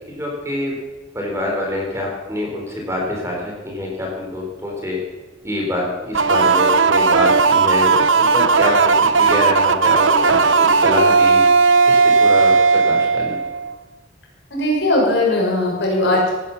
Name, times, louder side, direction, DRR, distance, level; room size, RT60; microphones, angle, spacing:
voice 1, 0.2-0.7 1.1-5.0 5.4-11.4 11.9-12.5 12.9-13.4, left 1 dB, 15° right, -1 dB, 4.0 m, -25 dB
sound 1, 6.1-13.7, right 4 dB, 75° right, 0.8 m, -15 dB
voice 2, 14.5-16.3, left 1 dB, 60° left, -2 dB, 6.3 m, -18 dB
18.0 x 10.5 x 7.2 m, 1.2 s
head